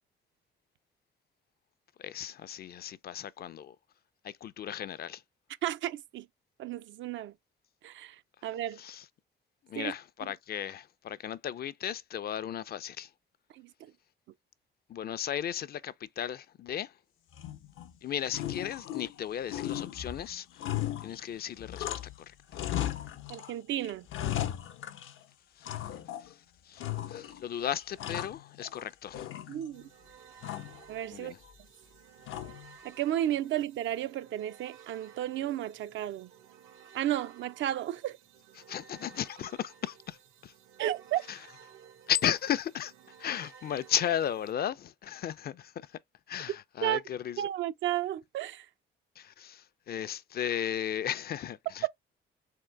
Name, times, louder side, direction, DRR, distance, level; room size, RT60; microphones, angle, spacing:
voice 1, 2.0-3.8 4.2-5.2 8.8-9.0 9.7-13.1 14.9-16.9 18.0-20.5 21.0-22.3 25.6-25.7 26.2-26.8 27.1-29.3 31.1-31.4 38.7-40.2 40.4-40.5 41.3-41.4 42.1-42.9 43.2-46.0 46.3-47.5 49.2-51.9, left 10 dB, 50° left, 0.5 m, -35 dB
voice 2, 5.6-6.3 6.6-7.3 7.8-8.8 9.8-9.9 13.5-13.9 23.3-24.1 29.5-29.9 30.9-31.3 32.8-36.3 36.9-38.2 40.8-41.2 46.8-47.0 47.4-48.7 51.8-51.9, right 12 dB, 75° right, 0.5 m, -33 dB
sound 1, 17.3-17.9 18.3-19.2 19.5-22.2 22.5-23.5 23.8-25.2 25.6-26.3 26.8-27.4 27.8-28.8 29.1-29.9 30.4-30.8 32.3-32.8, left 12 dB, 80° left, 0.7 m, -36 dB
sound 2, 29.7-44.5, right 8 dB, 90° right, 0.9 m, -55 dB
3.8 x 3.7 x 3.2 m
cardioid pair, 90°, 20 cm